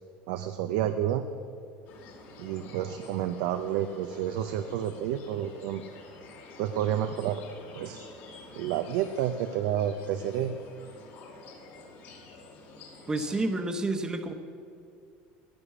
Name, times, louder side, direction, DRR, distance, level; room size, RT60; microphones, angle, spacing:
voice 1, 0.3-1.2 2.4-5.8 6.6-7.4 7.7-8.1 8.6-10.6, right 10 dB, 80° right, 8 dB, 0.6 m, -30 dB
sound 1, 1.9-13.4, left 3 dB, 60° left, 2.6 m, -49 dB
voice 2, 13.1-14.3, right 2 dB, 15° right, 7 dB, 1.0 m, -29 dB
10.5 x 9.8 x 8.4 m, 2.3 s
supercardioid pair, 130°, 4 cm